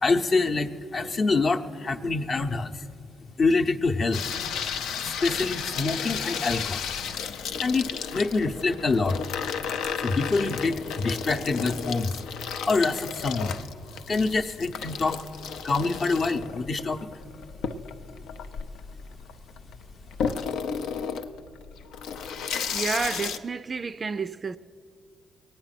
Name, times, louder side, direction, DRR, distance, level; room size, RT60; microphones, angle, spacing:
voice 1, 0.0-2.7 3.4-4.2 5.1-6.8 7.6-9.2 10.0-12.1 12.7-13.6 14.1-15.2 15.6-17.1, left 3 dB, 40° left, 0.7 m, -25 dB
Water tap faucet / Sink (filling or washing), 4.1-23.4, left 6 dB, 85° left, 0.6 m, -33 dB
voice 2, 22.7-24.6, right 5 dB, 35° right, 0.4 m, -30 dB
22.0 x 8.9 x 5.9 m
cardioid pair, 90°, 0 cm